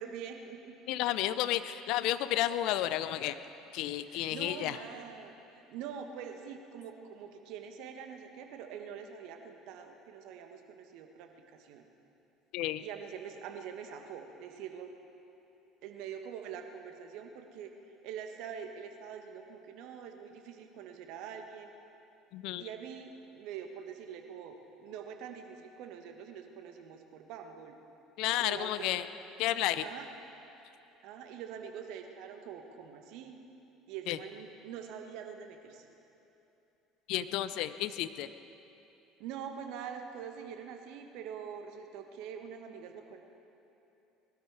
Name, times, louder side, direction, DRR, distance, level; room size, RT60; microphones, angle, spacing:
voice 1, 0.0-0.7 4.1-11.9 12.8-14.9 15.8-17.7 18.0-21.7 22.6-27.8 28.4-29.0 29.8-30.1 31.0-33.4 33.9-35.9 39.2-43.2, right 7 dB, 65° right, 5 dB, 1.4 m, -44 dB
voice 2, 0.9-3.4 3.7-4.8 12.5-12.8 22.3-22.7 28.2-29.1 29.4-29.9 34.1-34.2 37.1-38.3, left 13 dB, 60° left, 13 dB, 0.5 m, -32 dB
20.5 x 12.5 x 4.8 m, 2.9 s
hypercardioid pair, 65°, 0 cm